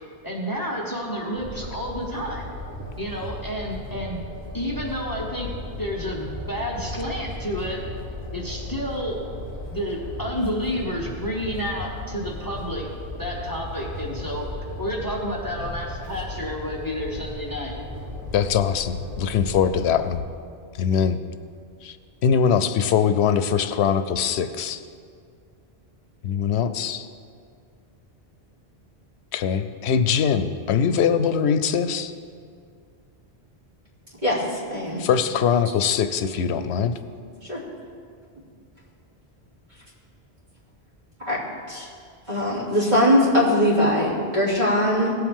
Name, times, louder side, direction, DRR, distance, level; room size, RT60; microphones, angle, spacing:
voice 1, 0.2-2.5 3.0-4.2 4.5-5.5 5.8-7.8 8.3-9.2 9.7-12.9 13.2-17.7, equal, 20° left, -3 dB, 1.3 m, -30 dB
sound 1, 1.3-20.2, left 1 dB, 25° right, 2.9 m, -36 dB
voice 2, 18.3-20.2 20.8-21.2 21.8-22.0 22.2-24.8 26.2-27.1 29.3-32.1 35.0-37.0, left 7 dB, 90° left, 10 dB, 0.9 m, -22 dB
voice 3, 34.2-35.0 37.5-37.6 41.2-41.4 41.7-41.9 42.3-45.1, left 1 dB, 45° right, -8 dB, 3.2 m, -21 dB
17.5 x 7.8 x 3.7 m, 2.2 s
omnidirectional pair, 1.1 m